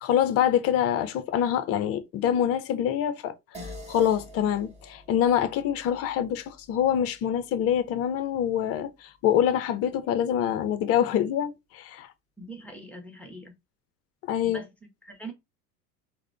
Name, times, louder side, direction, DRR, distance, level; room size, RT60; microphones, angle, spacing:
voice 1, 0.0-3.3 3.9-12.1 14.3-14.6, left 10 dB, 30° left, 0.5 m, -25 dB
sound 1, 3.5-8.3, equal, 15° right, 1.6 m, -47 dB
voice 2, 12.4-13.5 14.4-15.3, right 2 dB, 5° left, 0.9 m, -43 dB
3.6 x 2.1 x 3.2 m
figure-of-eight pair, 75°, 46 cm